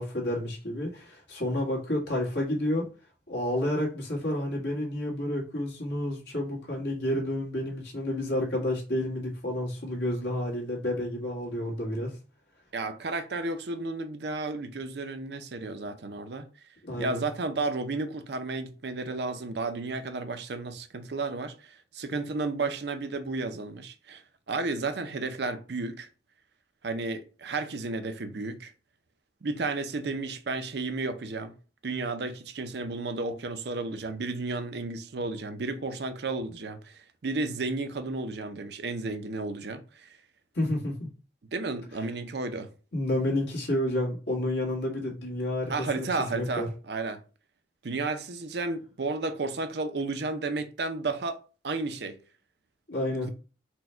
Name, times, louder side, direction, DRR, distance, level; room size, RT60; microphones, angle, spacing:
voice 1, 0.0-2.9 3.3-12.2 16.8-17.2 40.5-41.1 42.9-46.7 52.9-53.3, left 1 dB, 70° left, 1.7 m, -30 dB
voice 2, 12.7-16.5 17.0-24.2 24.5-26.1 26.8-28.7 29.4-31.5 31.8-40.1 41.5-42.7 45.7-47.2 47.8-51.4 51.6-52.2 53.2-53.3, right 3 dB, 65° right, 0.6 m, -32 dB
4.4 x 2.3 x 4.4 m
head